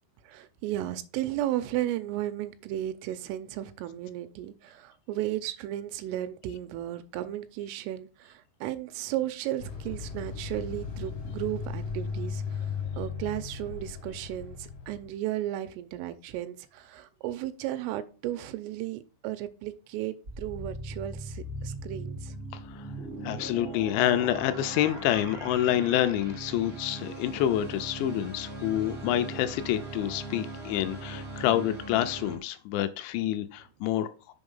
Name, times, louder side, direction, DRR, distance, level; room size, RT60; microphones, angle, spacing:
voice 1, 0.2-22.3, right 13 dB, 85° right, 3.2 m, -34 dB
sound 1, 9.6-15.1, left 5 dB, 60° left, 1.4 m, -36 dB
sound 2, 20.2-32.4, right 2 dB, 50° right, 1.0 m, -39 dB
voice 2, 22.5-22.9 23.2-34.1, left 12 dB, 85° left, 2.6 m, -28 dB
7.0 x 4.9 x 5.4 m
omnidirectional pair, 5.7 m